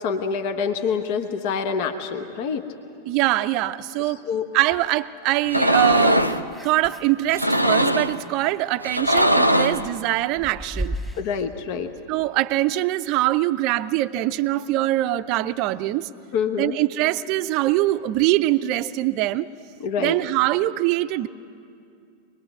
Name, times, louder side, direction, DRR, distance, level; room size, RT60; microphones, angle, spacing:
voice 1, 0.0-2.6 4.3-4.5 11.2-11.9 16.3-16.8 19.8-20.2, left 6 dB, 45° left, 8 dB, 1.0 m, -26 dB
voice 2, 3.1-4.2 4.5-6.2 6.6-11.0 12.1-16.1 16.6-19.5 20.0-21.3, right 16 dB, 40° right, 14 dB, 0.5 m, -23 dB
sound 1, 5.5-6.4 7.3-8.2 8.8-9.9, equal, 90° left, 0.6 m, -20 dB
sound 2, 5.9-7.2 7.5-8.7 9.1-11.2, equal, ahead, 1.8 m, -35 dB
24.0 x 20.5 x 8.0 m, 2.5 s
figure-of-eight pair, 90°, 0 cm